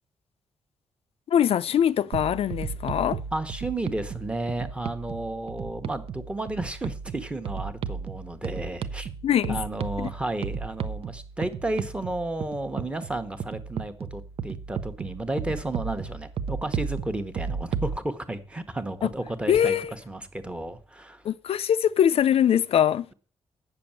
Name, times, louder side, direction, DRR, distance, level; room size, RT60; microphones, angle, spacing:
voice 1, 1.3-3.2 9.2-9.6 10.0-10.1 19.0-19.1 19.5-19.9 21.2-23.0, left 9 dB, 70° left, 0.5 m, -22 dB
sound 1, 2.1-18.0, right 6 dB, 65° right, 0.7 m, -34 dB
voice 2, 3.3-9.1 9.5-21.2, right 2 dB, 10° right, 1.0 m, -32 dB
8.9 x 6.9 x 8.7 m
wide cardioid pair, 160°, 10 cm